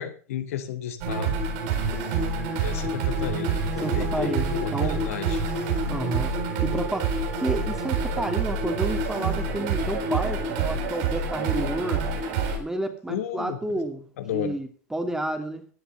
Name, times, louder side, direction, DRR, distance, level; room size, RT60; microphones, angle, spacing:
voice 1, 0.0-1.4 2.6-5.4 5.7-5.8 13.1-13.8 14.2-14.6, left 10 dB, 70° left, 8 dB, 2.5 m, -33 dB
sound 1, 1.0-12.6, right 4 dB, 60° right, 6.9 m, -27 dB
voice 2, 3.8-5.1 5.9-6.3 6.6-12.1 12.6-15.7, right 1 dB, 5° right, 5 dB, 2.6 m, -31 dB
16.0 x 10.0 x 5.4 m, 0.40 s
hypercardioid pair, 95°, 8 cm